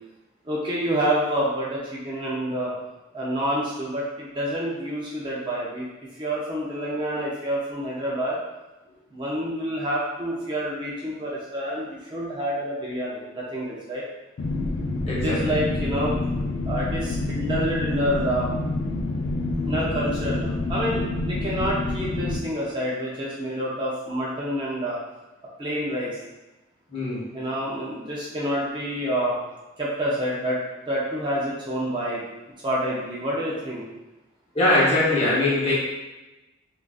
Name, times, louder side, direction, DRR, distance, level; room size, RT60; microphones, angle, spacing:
voice 1, 0.4-2.7 3.1-5.9 6.2-8.4 9.1-14.0 15.2-16.1 16.7-18.5 19.7-25.0 25.6-26.2 27.3-29.4 29.8-30.6 30.9-32.2 32.6-33.8, equal, 25° right, -6 dB, 0.4 m, -28 dB
sound 1, 14.4-22.4, left 2 dB, 70° left, 0.4 m, -27 dB
voice 2, 15.1-15.4 26.9-27.3 34.5-35.7, left 1 dB, 30° left, -7 dB, 0.8 m, -21 dB
3.6 x 2.4 x 2.3 m, 1.1 s
head